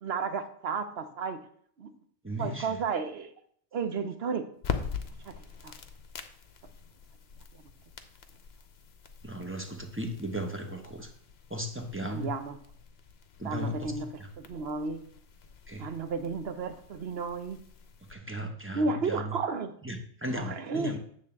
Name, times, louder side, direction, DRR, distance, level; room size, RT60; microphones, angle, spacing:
voice 1, 0.0-1.4 1.8-1.9 2.4-3.3 3.7-4.5 5.2-5.3 5.6-5.7 7.5-7.6 12.1-12.6 13.4-15.0 15.8-17.6 18.7-19.7 20.4-21.0, right 4 dB, 60° right, 9 dB, 1.0 m, -33 dB
voice 2, 2.2-2.8 9.2-11.1 11.5-12.3 13.4-13.9 14.2-14.3 15.7-15.9 18.1-19.3 19.8-21.0, equal, 10° right, 3 dB, 1.0 m, -36 dB
sound 1, 4.6-18.1, left 6 dB, 60° left, 1.0 m, -43 dB
9.2 x 3.9 x 7.1 m, 0.63 s
omnidirectional pair, 1.3 m